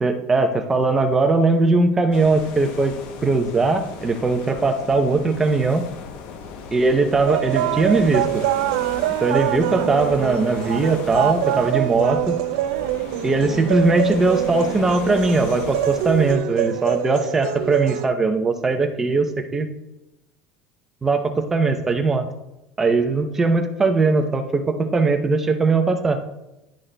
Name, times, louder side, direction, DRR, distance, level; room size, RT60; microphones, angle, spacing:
voice 1, 0.0-2.9 3.2-5.9 6.7-8.4 9.2-12.4 13.2-19.7 21.0-22.2 22.8-26.2, right 3 dB, 15° right, 6 dB, 0.6 m, -20 dB
sound 1, 2.1-16.3, left 5 dB, 55° left, 0.7 m, -37 dB
sound 2, 7.3-18.1, right 13 dB, 85° right, 0.4 m, -25 dB
10.5 x 6.2 x 2.2 m, 0.91 s
cardioid pair, 165°, 3 cm